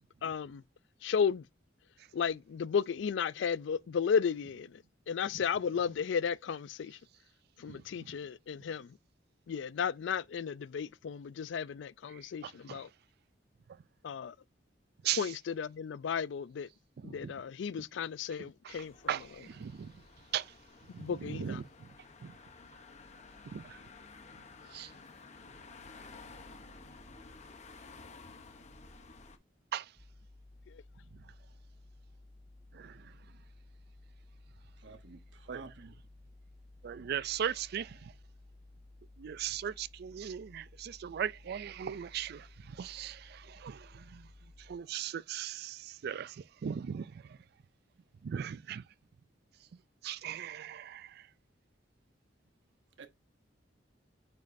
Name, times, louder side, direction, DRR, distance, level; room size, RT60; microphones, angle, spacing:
voice 1, 0.2-0.6 1.0-1.4 2.1-7.0 7.6-8.9 9.5-12.9 14.0-14.3 15.2-16.7 17.0-18.9 21.0-21.6 30.7-30.8, left 6 dB, 70° left, 0.4 m, -34 dB
voice 2, 12.1-12.8 15.0-15.3 17.0-17.3 18.4-19.9 20.3-20.5 20.9-21.9 22.2-22.3 23.5-23.8 24.7-24.9 29.7-29.9 32.7-33.1 35.5-35.6 36.8-38.1 39.2-44.3 44.6-47.4 48.2-48.8 50.0-51.2, right 9 dB, 55° right, 0.3 m, -39 dB
sound 1, 18.7-29.4, left 3 dB, 40° left, 0.8 m, -53 dB
sound 2, 29.9-44.8, left 2 dB, 30° right, 2.2 m, -56 dB
voice 3, 34.8-36.0 53.0-53.1, right 4 dB, 75° right, 1.0 m, -50 dB
9.1 x 5.2 x 2.6 m
head